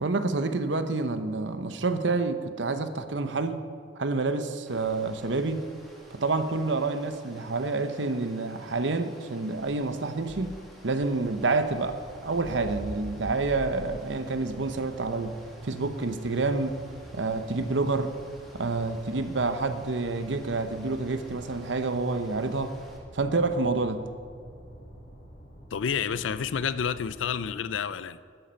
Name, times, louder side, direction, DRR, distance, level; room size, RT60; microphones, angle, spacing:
voice 1, 0.0-3.6 4.0-5.6 6.1-10.5 10.8-15.3 15.6-16.8 17.1-18.1 18.5-22.7 23.1-24.0, right 3 dB, 70° right, 0.8 m, -28 dB
sound 1, 4.7-23.0, equal, ahead, 2.1 m, -48 dB
sound 2, 11.6-27.6, equal, 60° left, 2.9 m, -48 dB
voice 2, 25.7-28.2, left 7 dB, 90° left, 0.5 m, -29 dB
12.0 x 11.0 x 5.3 m
head